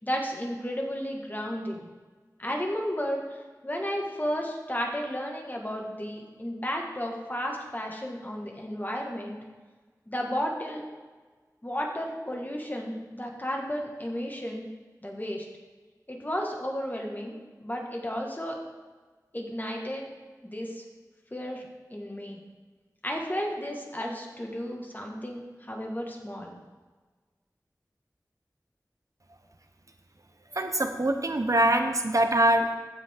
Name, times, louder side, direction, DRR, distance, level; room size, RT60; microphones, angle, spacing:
voice 1, 0.0-1.9 2.4-9.4 10.1-10.8 11.6-14.7 15.0-15.5 16.1-18.6 19.3-20.1 20.4-20.8 21.3-21.6 21.9-22.4 23.0-26.6, equal, 25° left, 0 dB, 1.8 m, -33 dB
voice 2, 30.5-32.8, right 1 dB, 55° right, 6 dB, 0.9 m, -24 dB
15.0 x 5.1 x 3.8 m, 1.3 s
wide cardioid pair, 40°, 7 cm